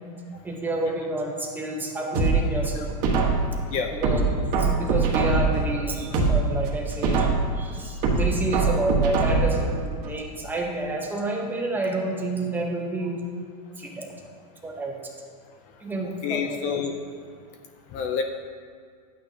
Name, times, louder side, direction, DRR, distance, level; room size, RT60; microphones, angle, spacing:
voice 1, 0.4-2.9 3.9-4.2 4.5-13.3 13.8-14.2 14.6-15.1 15.8-16.7, right 2 dB, 10° right, -1 dB, 1.1 m, -29 dB
sound 1, 2.1-3.6 4.0-5.6 6.0-7.6 8.0-9.6 10.0-10.1, right 4 dB, 45° right, 1.5 m, -22 dB
voice 2, 16.2-16.9 17.9-18.2, left 7 dB, 35° left, 5 dB, 0.6 m, -27 dB
11.5 x 8.9 x 2.9 m, 2.1 s
supercardioid pair, 145°, 20 cm